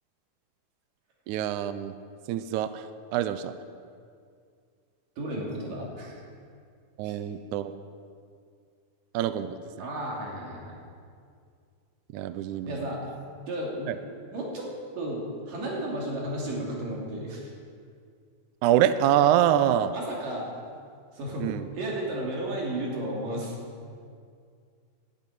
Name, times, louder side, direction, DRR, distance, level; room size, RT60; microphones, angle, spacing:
voice 1, 1.3-2.0 2.3-3.5 7.0-7.7 9.1-9.6 12.1-13.0 13.9-14.0 18.6-19.9 21.4-21.7, right 11 dB, 85° right, 12 dB, 1.7 m, -25 dB
voice 2, 5.2-6.2 7.0-7.2 9.8-10.8 12.6-13.0 13.5-13.9 14.3-14.7 15.0-17.5 19.9-20.5 21.1-21.5 21.8-23.6, right 1 dB, 65° right, -3 dB, 4.3 m, -33 dB
12.5 x 9.6 x 9.3 m, 2.2 s
omnidirectional pair, 4.2 m